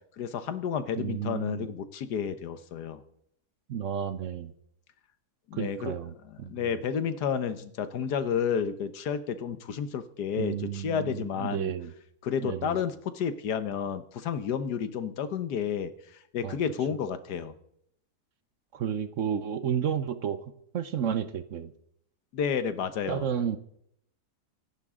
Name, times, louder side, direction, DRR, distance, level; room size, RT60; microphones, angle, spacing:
voice 1, 0.2-3.0 5.5-6.0 6.5-11.7 12.2-15.9 16.3-17.5 22.3-23.2, left 7 dB, 85° left, 12 dB, 1.6 m, -31 dB
voice 2, 1.0-1.7 3.7-4.5 5.5-6.7 10.4-11.9 12.4-12.8 16.4-16.6 18.7-20.4 20.7-21.7 23.1-23.6, right 8 dB, 60° right, 13 dB, 1.0 m, -32 dB
25.5 x 11.5 x 3.7 m, 0.74 s
omnidirectional pair, 1.7 m